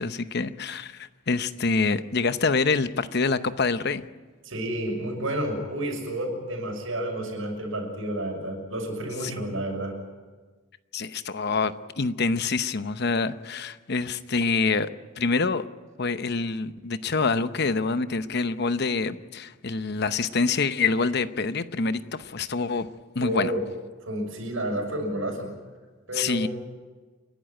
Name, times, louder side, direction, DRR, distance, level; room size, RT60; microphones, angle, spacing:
voice 1, 0.0-4.1 9.2-9.6 10.9-14.9 15.2-15.7 16.0-22.9 23.1-23.5 26.1-26.5, left 4 dB, 55° left, 0.8 m, -26 dB
voice 2, 4.4-9.9 23.2-23.6 24.0-25.5 26.1-26.5, right 1 dB, 85° right, 6.4 m, -30 dB
29.5 x 11.5 x 9.1 m
head